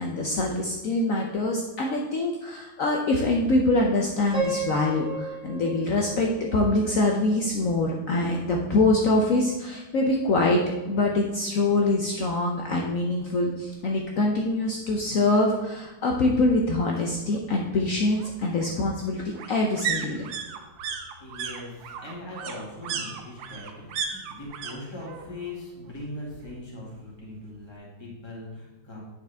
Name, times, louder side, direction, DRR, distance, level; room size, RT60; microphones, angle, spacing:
voice 1, 0.0-10.6 10.9-20.3, left 2 dB, 65° left, 0 dB, 0.8 m, -24 dB
Piano, 4.3-7.3, right 2 dB, 35° right, 2.1 m, -34 dB
sound 1, 13.8-13.9 14.3-14.4 14.7-15.7 17.0-24.7 25.0-25.6 25.8-26.9 27.2-27.3, right 7 dB, 75° right, 1.4 m, -36 dB
voice 2, 21.2-29.0, left 1 dB, 15° left, -4 dB, 1.8 m, -40 dB
9.1 x 5.3 x 3.4 m, 1.0 s
omnidirectional pair, 2.2 m